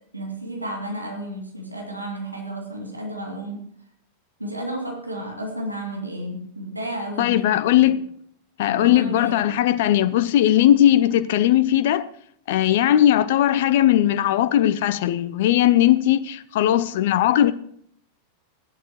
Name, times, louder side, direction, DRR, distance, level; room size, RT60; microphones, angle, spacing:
voice 1, 0.1-3.7 4.4-8.0 8.7-9.6, right 1 dB, 85° right, 2.6 m, -32 dB
voice 2, 7.2-8.0 8.6-12.1 12.5-17.5, left 12 dB, 55° left, 0.6 m, -18 dB
16.0 x 12.0 x 3.1 m
figure-of-eight pair, 90°, 0 cm